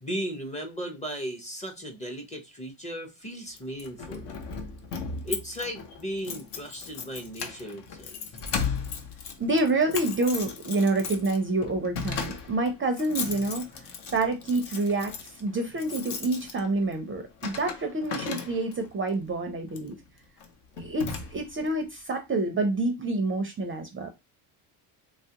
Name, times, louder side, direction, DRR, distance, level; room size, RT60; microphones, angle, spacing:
voice 1, 0.0-4.3 5.2-8.2, equal, 15° left, 0.6 m, -36 dB
Keys jangling, 3.6-18.9 19.7-19.9 20.4-20.5 20.8-21.7, left 5 dB, 60° left, 0.8 m, -37 dB
voice 2, 9.4-13.7 14.1-20.0 20.8-24.1, right 2 dB, 25° right, 0.5 m, -27 dB
3.1 x 2.3 x 2.8 m
cardioid pair, 110°, 49 cm